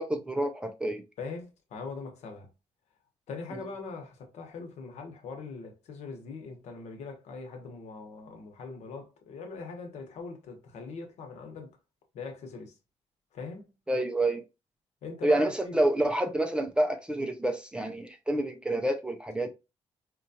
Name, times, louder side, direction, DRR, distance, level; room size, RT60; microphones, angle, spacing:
voice 1, 0.0-1.0 13.9-14.4 15.2-19.5, right 1 dB, 10° right, 0.3 m, -28 dB
voice 2, 1.2-2.5 3.3-11.8 12.1-12.8 13.3-13.7 15.0-15.8, left 4 dB, 75° left, 1.0 m, -41 dB
4.3 x 2.3 x 2.7 m
cardioid pair, 170°, 12 cm